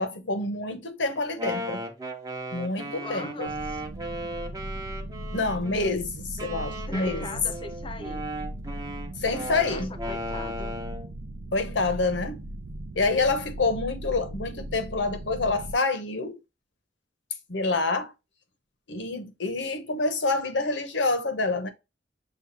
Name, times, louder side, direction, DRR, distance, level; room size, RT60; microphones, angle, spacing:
voice 1, 0.0-1.8 2.5-3.5 5.3-7.3 9.2-9.9 11.5-12.4 12.9-16.4 17.5-18.1 18.9-21.7, left 3 dB, 80° left, 0.9 m, -27 dB
Wind instrument woodwind instrument, 1.2-5.9 6.4-11.1, right 1 dB, 20° right, 0.8 m, -36 dB
voice 2, 3.0-3.8 6.9-8.3 9.6-10.8, left 3 dB, 30° left, 0.6 m, -40 dB
sound 1, 3.4-15.7, right 1 dB, 70° right, 0.5 m, -38 dB
6.9 x 2.3 x 2.6 m
head